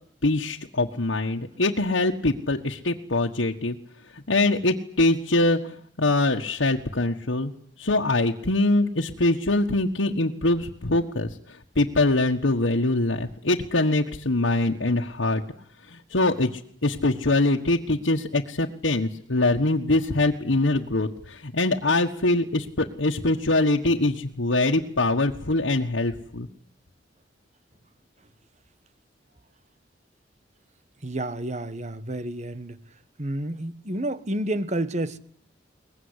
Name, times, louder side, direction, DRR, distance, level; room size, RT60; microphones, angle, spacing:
voice 1, 0.2-3.8 4.1-7.5 7.8-15.4 15.8-26.5, left 2 dB, 90° left, 1.5 m, -23 dB
voice 2, 31.0-32.8 33.2-35.2, right 1 dB, 40° right, 1.5 m, -30 dB
23.0 x 20.5 x 9.9 m
head